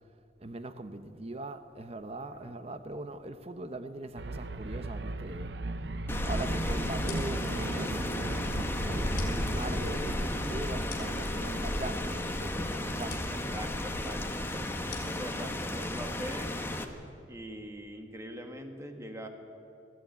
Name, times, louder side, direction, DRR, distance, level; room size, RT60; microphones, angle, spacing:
voice 1, 0.4-5.5 6.2-8.3 8.8-13.4 14.5-14.8, right 2 dB, 35° right, 0.8 m, -41 dB
sound 1, 4.2-14.1, right 2 dB, 65° right, 0.9 m, -38 dB
Rain, 6.1-16.8, left 1 dB, 15° left, 1.2 m, -33 dB
sound 2, 7.0-16.8, left 3 dB, 55° left, 4.8 m, -48 dB
voice 2, 13.3-16.5 17.3-19.3, equal, 15° right, 1.9 m, -42 dB
20.0 x 15.5 x 9.3 m
head